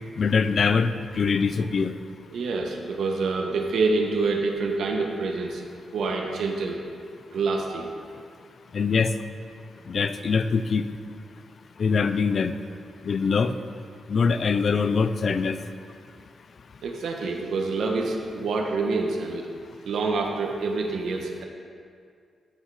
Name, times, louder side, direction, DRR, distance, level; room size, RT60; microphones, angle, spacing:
voice 1, 0.2-1.9 8.7-9.1 9.9-10.8 11.8-12.6 13.0-13.5 14.1-15.6, left 5 dB, 45° left, 12 dB, 0.5 m, -23 dB
voice 2, 2.3-5.6 5.9-6.8 7.3-8.0 16.8-19.5 19.8-21.4, right 3 dB, 75° right, 1 dB, 1.2 m, -27 dB
14.5 x 6.5 x 4.9 m, 2.2 s
wide cardioid pair, 140°, 0 cm